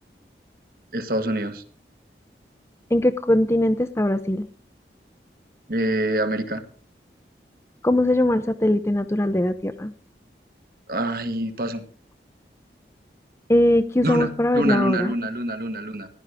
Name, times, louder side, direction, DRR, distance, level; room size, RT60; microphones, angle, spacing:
voice 1, 0.9-1.6 5.7-6.6 10.9-11.8 14.0-16.1, right 1 dB, 55° right, 8 dB, 1.4 m, -26 dB
voice 2, 2.9-4.5 7.8-9.9 13.5-15.1, left 1 dB, 15° left, 9 dB, 0.6 m, -20 dB
15.0 x 11.0 x 3.6 m, 0.43 s
head